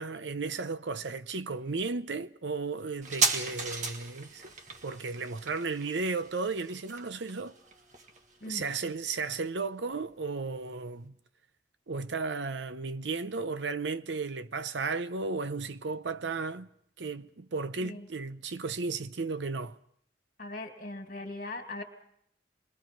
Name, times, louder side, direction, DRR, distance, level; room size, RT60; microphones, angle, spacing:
voice 1, 0.0-4.5 4.8-7.6 8.5-11.2 11.9-16.7 17.0-19.8, right 4 dB, 85° right, 0.7 m, -34 dB
sound 1, 3.0-10.1 10.4-10.5, right 3 dB, 45° right, 1.6 m, -36 dB
voice 2, 17.8-18.1 20.4-21.8, left 2 dB, 50° left, 2.5 m, -40 dB
28.5 x 22.0 x 4.5 m
head